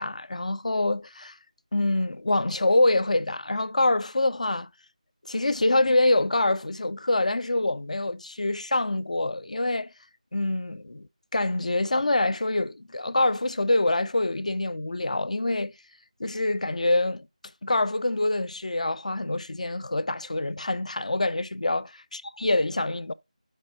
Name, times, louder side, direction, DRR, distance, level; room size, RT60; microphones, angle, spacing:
voice 1, 0.0-1.4 1.7-4.7 5.2-9.9 10.3-15.7 16.2-17.3 17.6-22.0 22.4-23.1, left 2 dB, 65° left, 0.6 m, -25 dB
5.4 x 5.4 x 4.8 m
figure-of-eight pair, 170°, 4 cm